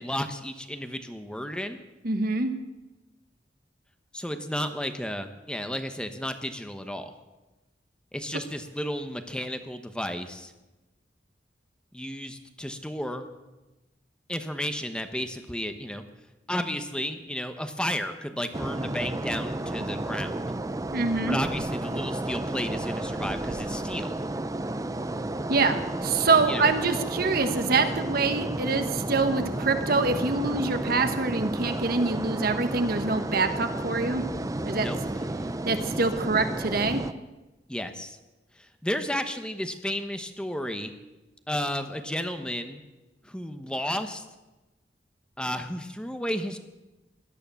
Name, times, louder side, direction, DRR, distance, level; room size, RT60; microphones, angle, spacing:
voice 1, 0.0-1.8 4.1-7.1 8.1-10.5 11.9-13.3 14.3-16.0 16.5-20.3 21.3-24.2 26.5-26.7 34.7-35.0 37.7-38.2 38.6-40.9 41.5-42.8 43.2-44.2 45.4-46.6, equal, 5° left, 7 dB, 0.9 m, -32 dB
voice 2, 2.0-2.5 20.9-21.4 25.5-34.2 34.6-34.9 35.6-37.0, right 3 dB, 60° right, 8 dB, 1.4 m, -25 dB
sound 1, 18.5-37.1, right 1 dB, 20° right, 0.6 m, -32 dB
17.5 x 12.0 x 7.0 m, 1.1 s
head